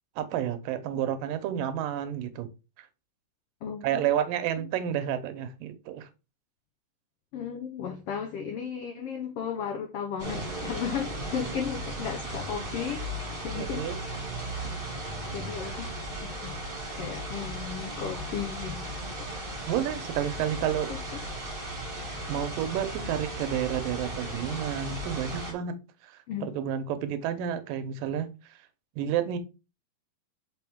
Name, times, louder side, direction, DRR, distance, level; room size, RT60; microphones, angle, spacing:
voice 1, 0.2-2.5 3.8-6.1 13.6-14.0 19.6-20.9 22.3-25.8 26.1-28.3 29.0-29.4, right 10 dB, 90° right, 2.5 m, -30 dB
voice 2, 3.6-4.0 7.3-13.1 13.4-13.9 14.6-15.9 16.2-16.6 17.0-18.9 20.9-21.0 26.3-26.5, left 7 dB, 85° left, 1.3 m, -35 dB
sound 1, 10.2-25.5, right 1 dB, 20° right, 1.6 m, -36 dB
6.2 x 5.4 x 3.5 m
omnidirectional pair, 3.8 m